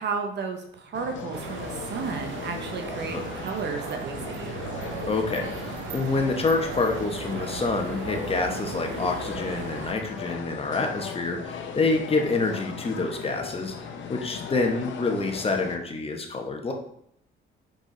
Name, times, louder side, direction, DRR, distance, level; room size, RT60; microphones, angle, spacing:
voice 1, 0.0-4.5, right 5 dB, 60° right, 4 dB, 0.9 m, -33 dB
sound 1, 0.9-15.8, left 6 dB, 70° left, 0.8 m, -37 dB
sound 2, 1.3-9.9, right 9 dB, 80° right, 0.5 m, -38 dB
voice 2, 5.1-13.7 14.1-16.7, left 3 dB, 30° left, 3 dB, 1.1 m, -27 dB
5.1 x 4.9 x 3.8 m, 0.70 s
cardioid pair, 90°, 20 cm